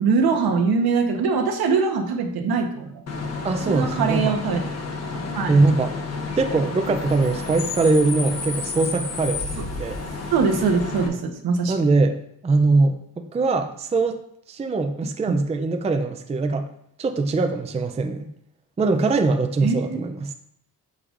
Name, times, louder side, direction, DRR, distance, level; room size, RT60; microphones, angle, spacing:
voice 1, 0.0-3.0 3.7-4.6 5.1-5.5 10.3-11.7 15.3-15.4 19.6-20.0, right 5 dB, 70° right, 4 dB, 1.1 m, -22 dB
Bus / Idling / Screech, 3.1-11.1, left 4 dB, 40° left, 1.3 m, -31 dB
voice 2, 3.4-4.4 5.5-6.0 6.4-10.0 11.7-14.2 14.5-16.7 17.0-18.3 18.8-20.3, right 3 dB, 15° right, 6 dB, 0.4 m, -22 dB
8.7 x 6.8 x 2.5 m, 0.70 s
cardioid pair, 145°, 39 cm